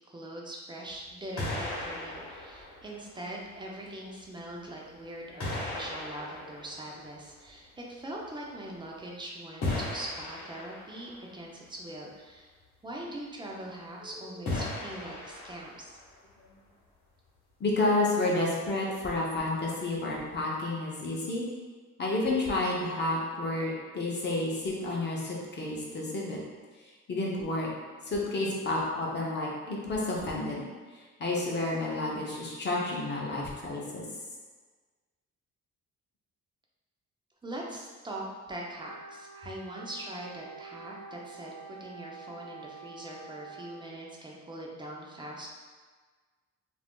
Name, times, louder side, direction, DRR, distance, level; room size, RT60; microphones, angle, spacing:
voice 1, 0.1-12.5 12.8-16.0 37.4-45.5, right 1 dB, 15° right, -2 dB, 0.5 m, -42 dB
sound 1, 0.9-1.1 1.4-3.5 4.5-4.6 5.4-7.6 9.6-11.2 14.5-16.1, left 2 dB, 60° left, 1.0 m, -36 dB
voice 2, 17.6-21.4 22.0-26.4 27.1-27.7 28.0-30.6 30.9-34.0, left 2 dB, 35° left, -3 dB, 0.7 m, -30 dB
Wind instrument woodwind instrument, 38.7-44.0, right 4 dB, 90° right, 0.8 m, -47 dB
2.5 x 2.0 x 3.5 m, 1.4 s
cardioid pair, 90°, 30 cm